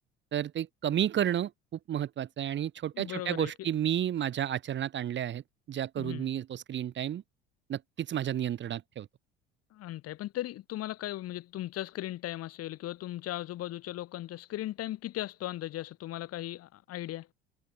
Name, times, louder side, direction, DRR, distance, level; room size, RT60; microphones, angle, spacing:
voice 1, 0.3-5.4 5.7-7.2 7.7-9.1, right 10 dB, 40° right, 1.2 m, -31 dB
voice 2, 2.9-3.5 6.0-6.3 9.7-17.3, left 14 dB, 55° left, 6.2 m, -37 dB
hypercardioid pair, 70°, 29 cm